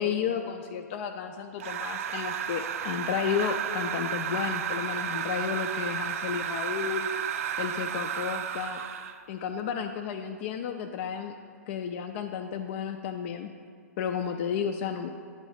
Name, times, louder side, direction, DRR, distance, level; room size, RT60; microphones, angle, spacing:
voice 1, 0.0-7.1 7.6-8.8 9.3-11.4 11.7-13.5 14.0-15.1, left 7 dB, 45° left, 5 dB, 0.4 m, -32 dB
sound 1, 1.6-9.2, right 9 dB, 60° right, 0.4 m, -32 dB
8.8 x 3.1 x 5.6 m, 2.1 s
hypercardioid pair, 120°, 9 cm